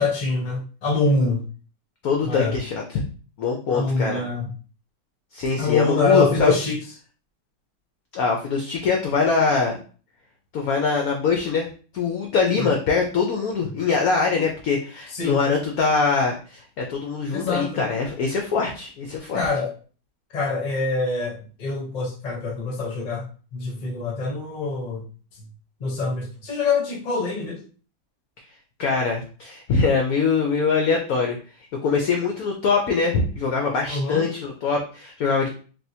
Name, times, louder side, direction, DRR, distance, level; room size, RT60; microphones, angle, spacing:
voice 1, 0.0-1.4 2.2-2.6 3.7-4.5 5.6-6.8 12.6-12.7 15.1-15.4 17.3-17.8 19.3-19.7 20.3-23.2 23.5-25.0 25.8-27.6 33.9-34.3, left 4 dB, 45° left, -1 dB, 0.5 m, -24 dB
voice 2, 2.0-3.0 3.4-4.2 5.3-6.5 8.1-9.8 10.5-19.5 28.8-31.4 31.8-35.5, left 4 dB, 75° left, 1 dB, 0.8 m, -23 dB
3.4 x 2.7 x 2.7 m, 0.40 s
omnidirectional pair, 2.1 m